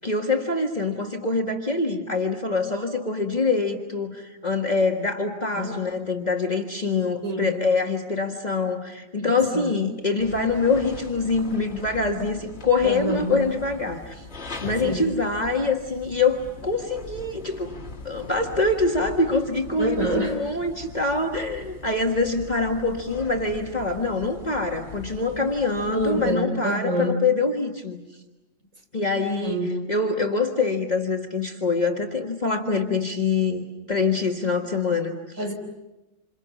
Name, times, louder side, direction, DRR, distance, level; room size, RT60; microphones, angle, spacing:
voice 1, 0.0-14.2 14.6-17.8 18.0-28.0 28.9-29.6 29.9-35.4, left 3 dB, 35° left, 2 dB, 1.7 m, -25 dB
voice 2, 7.2-7.6 9.2-9.7 12.8-13.4 14.8-15.1 19.8-20.4 25.9-27.2 29.4-29.8 35.4-35.5, right 1 dB, 85° right, 3 dB, 4.3 m, -27 dB
sound 1, 10.2-26.3, left 3 dB, 50° left, 2.8 m, -41 dB
28.0 x 28.0 x 7.2 m, 1.0 s
omnidirectional pair, 1.4 m